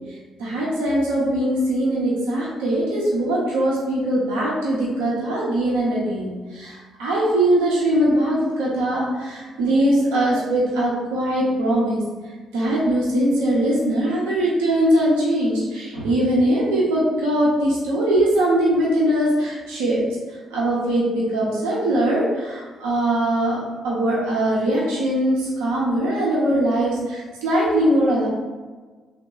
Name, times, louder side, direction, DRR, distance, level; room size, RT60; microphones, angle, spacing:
voice 1, 0.4-20.0 20.5-23.6 23.8-28.3, right 1 dB, 80° right, -6 dB, 0.8 m, -21 dB
3.1 x 2.1 x 3.7 m, 1.4 s
hypercardioid pair, 45°, 0 cm